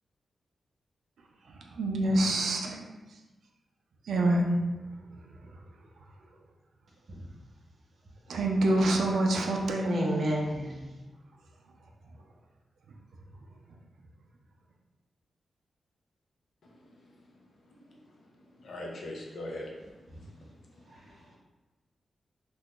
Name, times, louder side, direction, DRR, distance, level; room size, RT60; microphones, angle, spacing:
voice 1, 1.5-2.8 4.0-4.6 5.4-5.5 8.3-10.1, right 1 dB, 90° right, 0 dB, 0.4 m, -26 dB
voice 2, 9.8-10.8 20.1-20.2, right 1 dB, 60° right, -2 dB, 0.7 m, -30 dB
voice 3, 16.6-21.4, left 1 dB, 75° left, -2 dB, 0.6 m, -45 dB
2.5 x 2.4 x 3.6 m, 1.2 s
cardioid pair, 95°, 0 cm